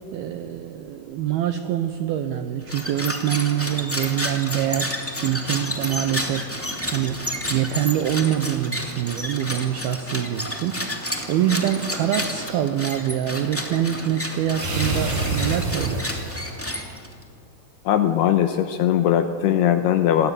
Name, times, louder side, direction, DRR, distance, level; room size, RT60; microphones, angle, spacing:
voice 1, 0.1-5.0 5.2-6.5 6.9-7.2 7.5-10.8 11.3-16.2, right 11 dB, 85° right, 8 dB, 2.2 m, -25 dB
sound 1, 2.6-17.2, left 1 dB, 15° left, 0.4 m, -31 dB
sound 2, 10.9-12.7 14.5-16.5, right 2 dB, 55° right, 7.0 m, -29 dB
voice 2, 17.9-20.3, left 10 dB, 75° left, 8 dB, 2.4 m, -20 dB
27.0 x 19.5 x 9.0 m, 2.4 s
omnidirectional pair, 5.6 m